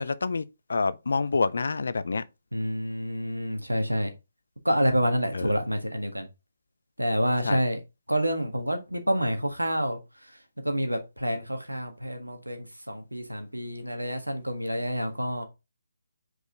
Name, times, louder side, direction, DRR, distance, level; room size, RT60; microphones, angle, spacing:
voice 1, 0.0-2.2 5.3-5.5 7.4-7.6, left 4 dB, 60° left, 0.6 m, -27 dB
voice 2, 2.5-4.1 4.6-6.3 7.0-7.8 8.1-10.0 10.6-15.4, equal, 90° right, 1.5 m, -28 dB
5.2 x 4.8 x 3.8 m
figure-of-eight pair, 140°, 0 cm